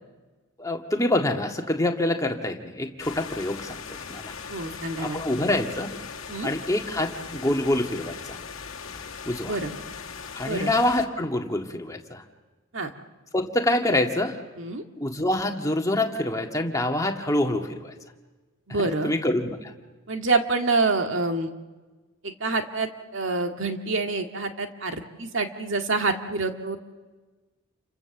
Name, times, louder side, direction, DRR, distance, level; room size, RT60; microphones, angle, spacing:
voice 1, 0.6-4.3 5.0-5.9 6.4-8.4 9.3-9.6 10.3-12.2 13.3-14.4 15.0-17.9 18.7-19.7, left 1 dB, 15° left, 3 dB, 1.9 m, -26 dB
sound 1, 3.0-11.1, left 6 dB, 75° left, 1.8 m, -39 dB
voice 2, 4.5-5.2 6.3-6.5 9.5-9.7 10.4-10.7 12.7-12.9 14.6-14.8 18.7-19.1 20.1-21.5 22.2-26.8, right 3 dB, 60° right, 5 dB, 2.0 m, -27 dB
29.0 x 25.0 x 7.1 m, 1.3 s
head